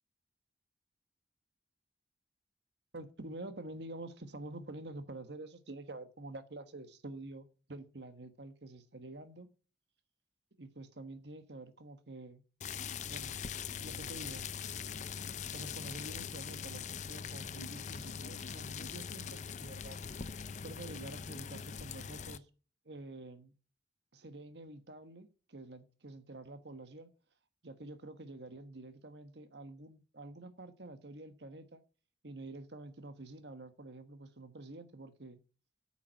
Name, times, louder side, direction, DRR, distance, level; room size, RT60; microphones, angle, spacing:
voice 1, 2.9-9.5 10.6-12.4 13.0-13.3 13.8-14.5 15.5-20.0 20.6-22.5 22.8-23.5 24.1-27.1 27.6-31.8 32.2-35.4, right 2 dB, 70° right, 1.4 m, -48 dB
sound 1, 12.6-22.4, left 7 dB, 40° left, 0.5 m, -42 dB
8.8 x 7.4 x 7.5 m
head